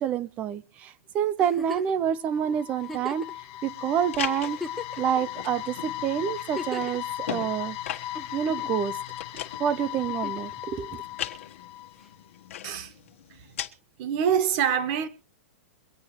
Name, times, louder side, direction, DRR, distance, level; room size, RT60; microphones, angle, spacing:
voice 1, 0.0-3.3 3.6-4.6 5.0-7.8 8.3-9.0 9.6-11.0, right 9 dB, 20° right, 0.5 m, -28 dB
Giggle, 1.4-2.0 2.8-3.3 4.0-4.1 4.4-5.2 6.3-7.0 8.2-8.8 10.1-10.5 12.0-12.1, left 1 dB, ahead, 0.9 m, -38 dB
sound 1, 2.1-12.1, left 14 dB, 35° left, 0.8 m, -37 dB
sound 2, 3.6-13.7, left 11 dB, 65° left, 1.4 m, -40 dB
voice 2, 14.0-15.1, right 8 dB, 35° right, 1.4 m, -25 dB
24.0 x 9.0 x 3.1 m
supercardioid pair, 170°, 7 cm